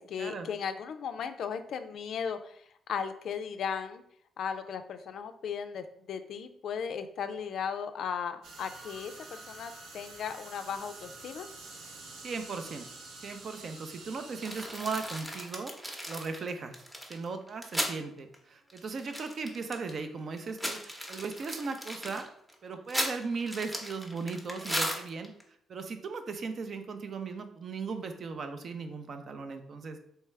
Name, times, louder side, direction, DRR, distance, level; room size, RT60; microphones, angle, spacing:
voice 1, 0.0-2.6 2.9-4.0 4.4-11.5, left 7 dB, 65° left, 9 dB, 0.3 m, -36 dB
sound 1, 8.4-15.2, right 3 dB, 80° right, 0.8 m, -48 dB
voice 2, 12.2-13.0 13.2-15.7 16.1-22.3 22.6-25.3 25.7-30.0, right 4 dB, 50° right, 7 dB, 0.5 m, -37 dB
sound 2, 14.4-18.0 18.3-18.4 18.7-20.0 20.4-25.4, equal, 5° right, 0.8 m, -36 dB
3.4 x 3.2 x 3.2 m, 0.69 s
cardioid pair, 90°, 0 cm